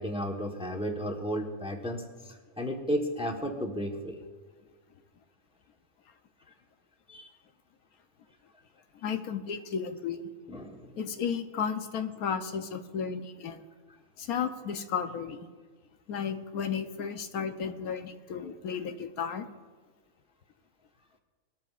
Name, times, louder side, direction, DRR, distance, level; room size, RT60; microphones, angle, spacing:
voice 1, 0.0-4.2 7.1-7.3 10.5-10.9, equal, 5° right, 2 dB, 1.0 m, -33 dB
voice 2, 9.0-10.3 11.0-13.6 14.2-15.4 16.1-19.5, left 7 dB, 80° left, 7 dB, 1.3 m, -33 dB
20.0 x 13.5 x 2.5 m, 1.4 s
omnidirectional pair, 1.5 m